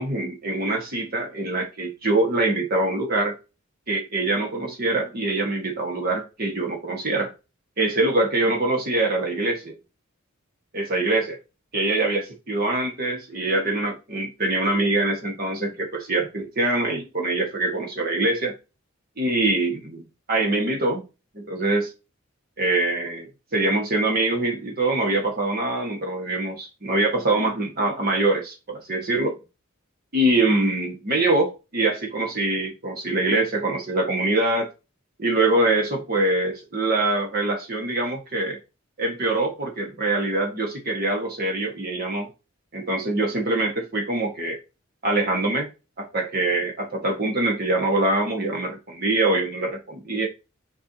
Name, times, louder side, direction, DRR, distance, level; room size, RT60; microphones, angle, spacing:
voice 1, 0.0-3.4 3.9-7.3 7.8-9.8 10.7-11.4 11.7-18.5 19.2-21.0 21.4-21.9 22.6-26.5 26.8-29.4 30.1-34.7 35.2-38.6 39.0-42.3 42.7-44.6 45.0-45.7 46.0-50.3, right 2 dB, 45° right, 1.7 m, -24 dB
7.0 x 4.7 x 2.9 m
head